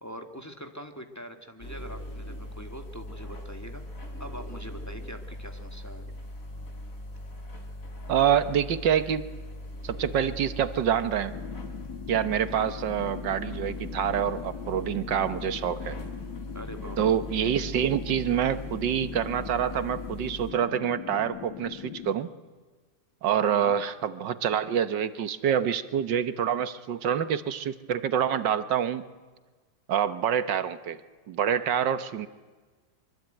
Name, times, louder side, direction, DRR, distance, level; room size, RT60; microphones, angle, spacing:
voice 1, 0.0-3.8 4.2-6.1 12.5-12.7 16.5-17.0 23.5-23.8, equal, 10° left, 5 dB, 1.8 m, -43 dB
sound 1, 1.6-20.5, left 1 dB, 50° left, 3.8 m, -40 dB
voice 2, 8.1-9.2 9.8-11.3 12.1-16.0 17.0-22.3 23.2-29.0 29.9-31.0 31.3-32.3, right 9 dB, 80° right, 12 dB, 1.8 m, -26 dB
sound 2, 11.3-22.1, left 11 dB, 80° left, 1.7 m, -41 dB
24.0 x 24.0 x 9.2 m, 1.3 s
omnidirectional pair, 1.9 m